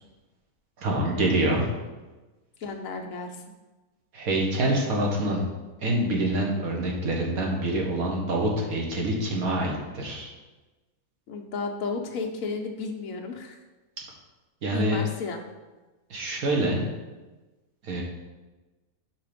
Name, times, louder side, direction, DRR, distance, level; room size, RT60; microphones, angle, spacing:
voice 1, 0.8-1.7 4.1-5.4 5.8-10.3 14.6-15.0 16.1-16.9 17.8-18.0, right 1 dB, 75° right, -1 dB, 1.7 m, -26 dB
voice 2, 2.6-3.4 11.3-13.6 14.7-15.4, left 4 dB, 65° left, 2 dB, 1.2 m, -33 dB
5.8 x 4.7 x 5.0 m, 1.2 s
omnidirectional pair, 1.6 m